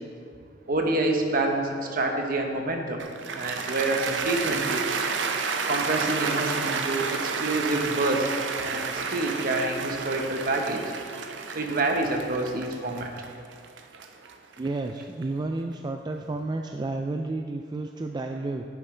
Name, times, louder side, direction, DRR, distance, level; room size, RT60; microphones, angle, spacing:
voice 1, 0.7-3.0 3.3-4.9 5.7-8.3 8.6-10.8 11.5-13.1, right 2 dB, 50° right, 3 dB, 1.1 m, -27 dB
Cheering / Applause, 3.0-15.2, right 5 dB, 75° right, 0.6 m, -31 dB
voice 2, 14.6-18.6, right 2 dB, 25° right, 4 dB, 0.3 m, -31 dB
11.0 x 9.1 x 3.3 m, 2.2 s
head